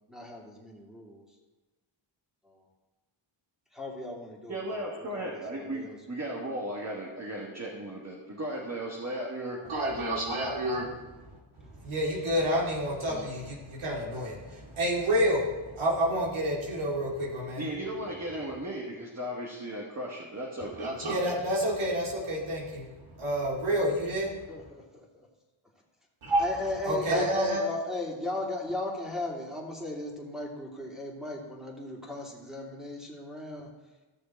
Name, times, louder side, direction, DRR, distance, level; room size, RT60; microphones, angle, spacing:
voice 1, 0.1-1.2 2.4-2.6 3.7-4.9 5.1-6.0 24.5-25.3 26.4-33.7, left 2 dB, ahead, -4 dB, 2.7 m, -37 dB
voice 2, 4.5-9.6 17.6-20.9, right 1 dB, 30° right, -2 dB, 1.6 m, -36 dB
voice 3, 9.7-11.0 11.7-17.7 20.6-24.4 26.3-27.6, equal, 70° right, -3 dB, 2.3 m, -29 dB
14.5 x 6.5 x 4.5 m, 1.2 s
wide cardioid pair, 90°, 50 cm